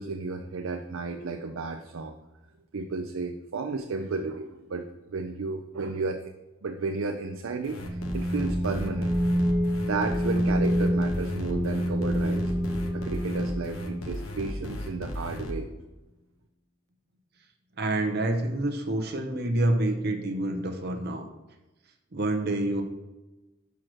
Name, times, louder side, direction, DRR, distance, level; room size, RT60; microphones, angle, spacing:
voice 1, 0.0-2.1 2.7-4.8 5.1-6.2 6.6-9.1 9.5-9.6 9.8-12.5 12.9-15.7, right 3 dB, 70° right, 6 dB, 0.5 m, -33 dB
sound 1, 7.6-15.5, left 1 dB, 80° left, 1.0 m, -36 dB
sound 2, 7.8-14.0, equal, 15° right, 0.4 m, -27 dB
Bass guitar, 11.5-15.8, left 2 dB, 35° left, 0.6 m, -44 dB
voice 2, 17.8-21.3 22.1-22.8, right 1 dB, 50° right, 4 dB, 0.8 m, -27 dB
6.3 x 4.6 x 6.1 m, 1.1 s
head